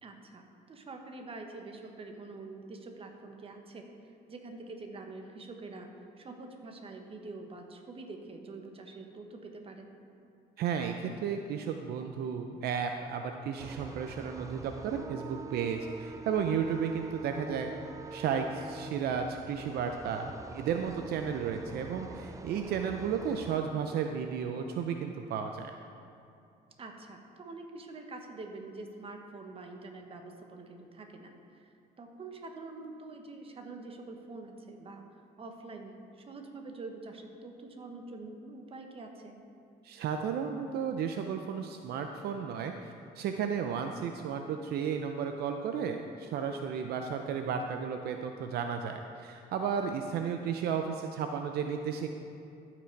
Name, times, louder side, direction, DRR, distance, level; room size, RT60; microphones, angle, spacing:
voice 1, 0.0-9.9 26.8-35.0 35.4-39.4, right 3 dB, 35° right, 4 dB, 1.2 m, -46 dB
voice 2, 10.6-17.7 18.1-25.7 39.8-42.7 43.2-52.1, right 7 dB, 70° right, 5 dB, 0.6 m, -33 dB
sound 1, 13.6-23.6, right 4 dB, 20° right, 0.4 m, -45 dB
14.0 x 6.0 x 4.6 m, 2.6 s
cardioid pair, 110°, 17 cm